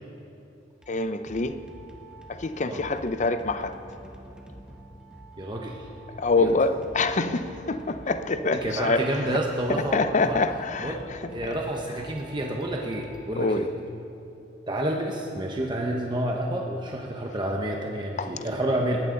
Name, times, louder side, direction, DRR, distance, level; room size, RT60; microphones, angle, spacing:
sound 1, 0.7-13.9, right 1 dB, 5° right, 1.5 m, -47 dB
voice 1, 0.9-1.6 2.3-3.8 6.2-9.0 9.7-11.4 13.4-13.6 18.2-18.3, left 3 dB, 40° left, 0.6 m, -25 dB
voice 2, 5.4-5.9 6.4-6.5 8.5-10.4 10.8-13.7 14.7-19.0, right 1 dB, 25° right, 1.0 m, -29 dB
20.0 x 15.5 x 3.9 m
head